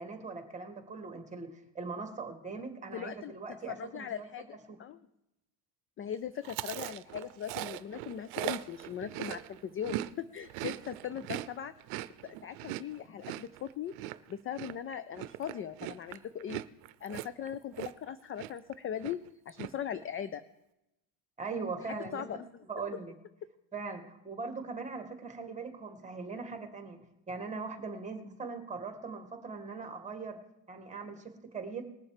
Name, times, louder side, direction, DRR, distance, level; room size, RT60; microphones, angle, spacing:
voice 1, 0.0-4.3 4.7-4.8 21.4-22.2 22.7-23.1 23.7-27.0 27.3-30.4 30.7-31.8, right 4 dB, 15° right, 7 dB, 1.9 m, -40 dB
voice 2, 2.9-3.3 3.7-5.0 6.0-11.7 12.2-13.9 14.3-16.6 17.0-19.2 19.5-20.4 21.8-21.9 22.1-22.6, left 9 dB, 30° left, 14 dB, 0.4 m, -39 dB
Chewing mastication, 6.4-10.1 10.4-18.1 18.4-18.7 19.0-19.7, right 16 dB, 80° right, 0.7 m, -40 dB
20.0 x 7.1 x 4.9 m, 0.89 s
cardioid pair, 120°, 50 cm